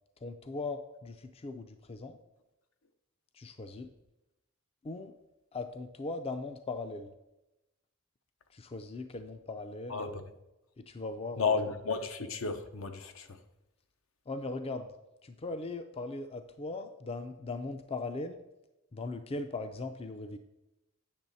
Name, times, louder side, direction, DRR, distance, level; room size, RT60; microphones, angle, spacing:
voice 1, 0.2-2.2 3.3-3.9 4.8-5.1 5.5-7.1 8.5-10.2 10.8-11.5 14.3-14.9 15.2-18.4 18.9-20.4, left 3 dB, 30° left, 8 dB, 0.4 m, -39 dB
voice 2, 11.4-13.3, left 4 dB, 70° left, 8 dB, 0.7 m, -32 dB
8.7 x 6.3 x 4.0 m, 0.95 s
head